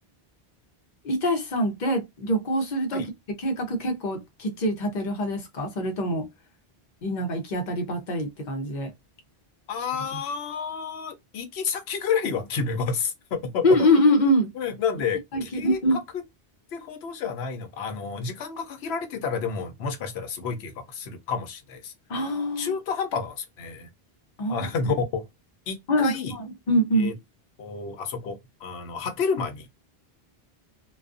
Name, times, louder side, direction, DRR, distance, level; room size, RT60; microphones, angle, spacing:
voice 1, 1.0-3.1 3.4-6.3 7.0-8.9 13.6-14.5 15.3-16.0 22.1-22.7 24.4-24.7 25.9-27.1, equal, 50° left, 0.8 m, -24 dB
voice 2, 9.7-13.6 14.5-16.2 16.7-21.9 22.6-23.9 24.5-25.3 25.7-26.3 26.9-27.1 27.6-29.7, left 5 dB, 85° left, 0.9 m, -30 dB
2.4 x 2.3 x 2.4 m
omnidirectional pair, 1.0 m